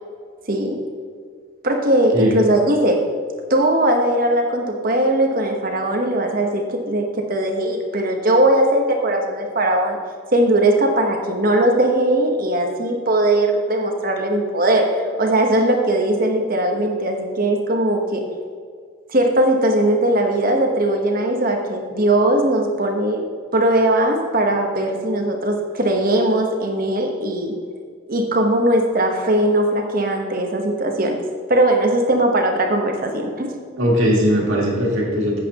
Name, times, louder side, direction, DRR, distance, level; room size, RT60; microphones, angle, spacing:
voice 1, 0.5-0.8 1.6-3.0 3.5-10.0 10.3-18.2 19.1-23.2 23.5-27.5 28.1-31.2 31.5-33.5, right 1 dB, 45° right, 3 dB, 1.1 m, -19 dB
voice 2, 33.8-35.4, equal, 75° right, -3 dB, 2.4 m, -19 dB
11.0 x 8.4 x 2.9 m, 2.1 s
head